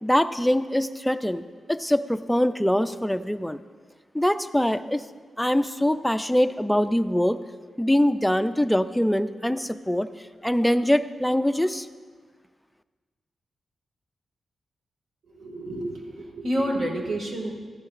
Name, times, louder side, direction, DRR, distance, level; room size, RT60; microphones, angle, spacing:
voice 1, 0.0-3.6 4.1-5.0 5.4-7.4 7.8-10.1 10.4-11.9, left 1 dB, 5° left, 10 dB, 0.3 m, -23 dB
voice 2, 15.2-17.6, right 1 dB, 70° right, 0 dB, 1.9 m, -29 dB
13.5 x 10.5 x 2.5 m, 1.5 s
wide cardioid pair, 110°, 0 cm